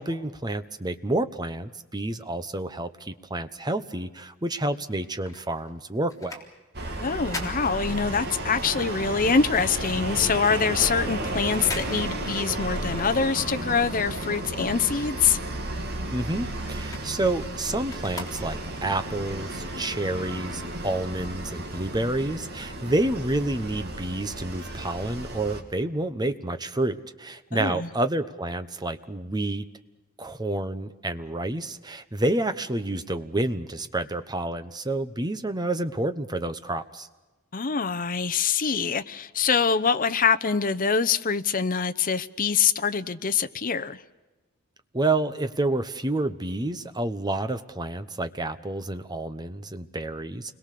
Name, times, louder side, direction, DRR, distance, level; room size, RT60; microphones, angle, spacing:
voice 1, 0.0-6.4 16.1-29.7 30.2-37.1 44.9-50.5, right 2 dB, 20° right, 1.1 m, -29 dB
sound 1, 4.9-8.5 8.9-14.8 15.1-18.9 19.5-19.6, left 2 dB, 15° left, 3.7 m, -43 dB
sound 2, 6.7-25.6, right 1 dB, 55° right, 2.7 m, -33 dB
voice 2, 7.0-15.4 27.5-27.9 37.5-44.0, left 6 dB, 45° left, 0.9 m, -24 dB
29.0 x 22.0 x 6.8 m
head